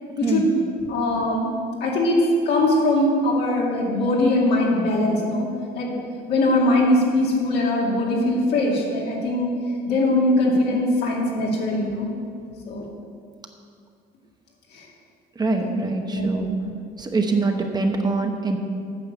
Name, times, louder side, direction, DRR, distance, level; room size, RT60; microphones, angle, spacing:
voice 1, 0.2-0.5 0.9-1.5 1.8-5.5 5.7-5.9 6.3-9.5 9.9-12.1 12.7-12.8 14.7-14.9 15.6-15.7 16.1-16.6, left 1 dB, 75° left, -3 dB, 2.5 m, -21 dB
voice 2, 15.4-16.5 17.0-18.6, right 3 dB, 25° right, 3 dB, 1.0 m, -23 dB
9.2 x 6.5 x 6.5 m, 2.3 s
cardioid pair, 110°, 17 cm